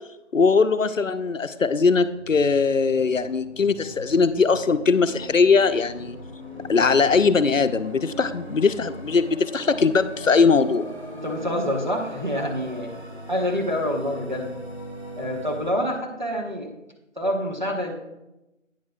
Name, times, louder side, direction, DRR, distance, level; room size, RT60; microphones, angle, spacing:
voice 1, 0.3-6.2 6.7-10.9, left 5 dB, 75° left, 12 dB, 0.6 m, -20 dB
sound 1, 1.7-15.7, equal, 25° left, 1.6 m, -39 dB
voice 2, 11.1-12.9 13.3-14.5 15.2-16.7 17.2-17.9, equal, 35° right, -1 dB, 1.1 m, -27 dB
10.5 x 9.2 x 2.3 m, 0.96 s
figure-of-eight pair, 175°, 39 cm